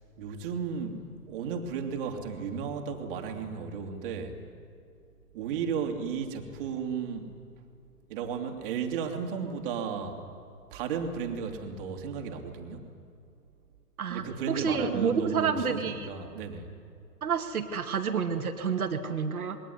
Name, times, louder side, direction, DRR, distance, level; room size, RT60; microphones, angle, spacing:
voice 1, 0.2-4.4 5.3-7.3 8.1-10.2 10.7-12.9 14.1-16.7, right 6 dB, 35° right, 3 dB, 3.1 m, -34 dB
voice 2, 14.0-16.1 17.2-19.6, right 6 dB, 60° right, 5 dB, 2.3 m, -29 dB
27.5 x 22.0 x 9.8 m, 2.3 s
figure-of-eight pair, 130°, 48 cm